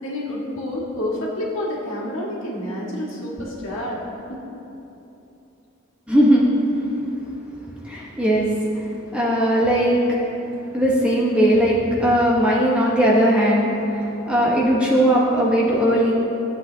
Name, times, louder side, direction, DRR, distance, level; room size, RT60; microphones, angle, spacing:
voice 1, 0.0-4.0 4.3-4.4, left 1 dB, 70° left, -5 dB, 1.9 m, -28 dB
voice 2, 6.1-6.5 7.8-8.8 9.1-10.0 10.7-16.1, equal, 5° right, -6 dB, 1.1 m, -18 dB
14.0 x 8.2 x 2.8 m, 2.9 s
head